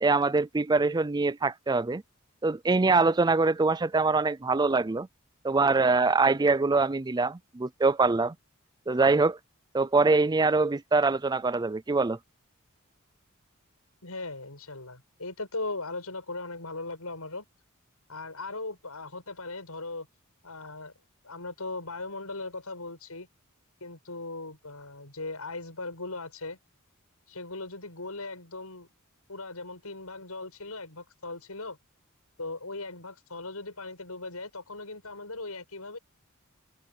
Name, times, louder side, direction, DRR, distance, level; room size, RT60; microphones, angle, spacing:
voice 1, 0.0-2.0 2.4-5.1 5.4-8.4 8.9-9.4 9.7-12.2, right 3 dB, 20° right, 0.4 m, -24 dB
voice 2, 14.0-17.4 18.1-20.1 20.4-20.9 21.2-23.3 23.8-26.6 27.3-28.9 29.3-31.8 32.4-36.0, left 3 dB, 85° left, 7.8 m, -38 dB
head